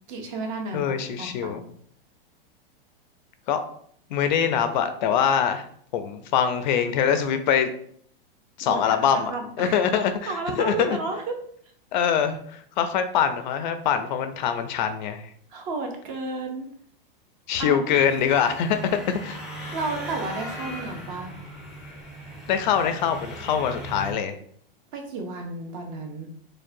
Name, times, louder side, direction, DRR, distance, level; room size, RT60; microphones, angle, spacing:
voice 1, 0.1-1.7 8.7-11.3 15.5-16.6 17.6-17.8 19.7-21.4 24.9-26.3, right 3 dB, 40° right, 3 dB, 0.7 m, -32 dB
voice 2, 0.7-1.6 3.5-3.6 4.1-5.6 5.9-7.7 8.6-9.3 9.6-11.0 11.9-15.3 17.5-19.4 22.5-24.3, left 8 dB, 55° left, 9 dB, 0.4 m, -24 dB
sound 1, 17.9-24.1, right 1 dB, ahead, 0.5 m, -38 dB
4.5 x 2.2 x 2.6 m, 0.63 s
supercardioid pair, 155°, 29 cm